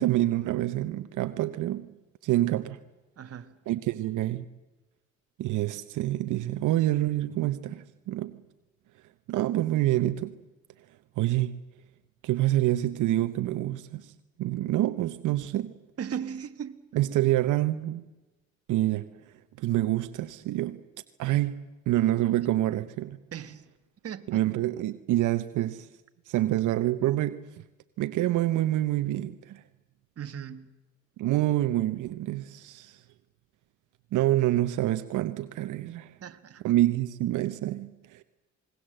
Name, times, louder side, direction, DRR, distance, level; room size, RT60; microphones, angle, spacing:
voice 1, 0.0-1.9 2.2-2.8 3.7-4.4 5.4-8.4 9.3-10.3 11.2-11.6 12.2-14.1 14.4-15.8 16.9-18.0 18.7-19.1 19.6-20.8 21.2-21.6 21.9-23.2 24.3-25.9 26.3-27.4 28.0-29.6 31.2-33.0 34.1-36.1 36.6-38.2, right 14 dB, 85° right, 0.9 m, -27 dB
voice 2, 3.2-3.6 16.0-16.8 23.3-23.7 24.0-24.4 30.2-30.7 36.2-36.6, right 8 dB, 50° right, 1.6 m, -37 dB
27.5 x 21.0 x 7.8 m
cardioid pair, 90°, 30 cm